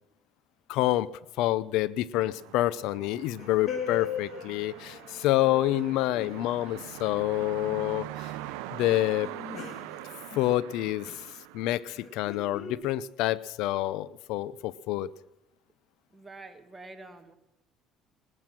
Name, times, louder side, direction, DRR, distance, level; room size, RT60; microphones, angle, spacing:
voice 1, 0.7-1.1 1.4-8.3 8.7-9.3 10.4-11.2 11.5-15.1, left 15 dB, 75° left, 20 dB, 0.5 m, -27 dB
sound 1, 2.2-12.4, right 16 dB, 85° right, 0.6 m, -43 dB
sound 2, 3.4-7.6 7.8-7.9 8.3-8.6 9.0-10.8 11.0-11.3 12.0-12.7, left 7 dB, 55° left, 1.9 m, -40 dB
voice 2, 16.1-17.3, right 2 dB, 15° right, 6 dB, 1.8 m, -46 dB
18.5 x 12.5 x 6.0 m, 0.86 s
supercardioid pair, 100°, 0 cm